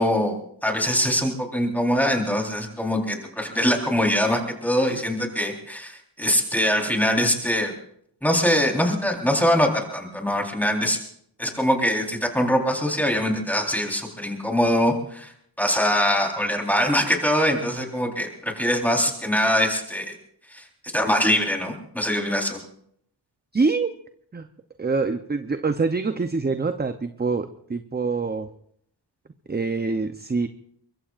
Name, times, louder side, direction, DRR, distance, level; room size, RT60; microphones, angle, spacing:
voice 1, 0.0-7.7 8.2-11.0 11.4-15.3 15.6-20.1 20.9-22.6, equal, 5° left, 1 dB, 4.1 m, -23 dB
voice 2, 23.5-23.9 24.3-24.5 24.8-28.5 29.5-30.5, right 4 dB, 20° right, 9 dB, 0.8 m, -25 dB
23.5 x 22.0 x 2.5 m, 0.67 s
wide cardioid pair, 85°, 45 cm